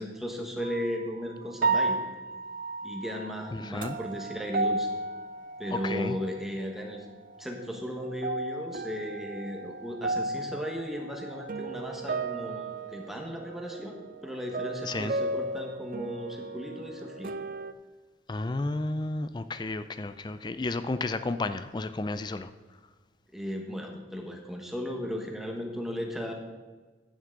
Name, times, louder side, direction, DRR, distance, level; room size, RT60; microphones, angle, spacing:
voice 1, 0.0-2.0 2.8-4.9 5.6-7.0 7.4-17.3 23.3-26.3, equal, ahead, 1 dB, 1.3 m, -36 dB
sound 1, 0.6-1.0 1.6-6.4 6.8-7.6 8.0-17.7, right 3 dB, 50° right, 0.4 m, -34 dB
voice 2, 3.5-4.0 5.8-6.1 14.8-15.1 18.3-22.5, left 2 dB, 25° left, 12 dB, 0.4 m, -32 dB
11.0 x 9.3 x 3.9 m, 1.3 s
head